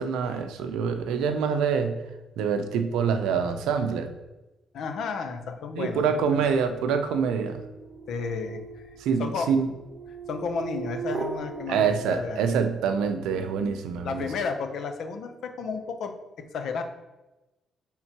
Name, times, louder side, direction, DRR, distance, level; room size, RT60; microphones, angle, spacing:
voice 1, 0.0-2.0 2.4-4.1 5.8-7.6 9.0-9.7 11.7-14.3, right 6 dB, 90° right, 8 dB, 0.5 m, -26 dB
voice 2, 4.7-6.4 8.1-8.9 9.2-9.5 10.3-12.5 14.0-16.8, left 5 dB, 75° left, 7 dB, 0.7 m, -32 dB
sound 1, 6.2-12.7, right 4 dB, 30° right, 0.7 m, -38 dB
8.8 x 3.7 x 2.9 m, 1.1 s
cardioid pair, 90°, 0 cm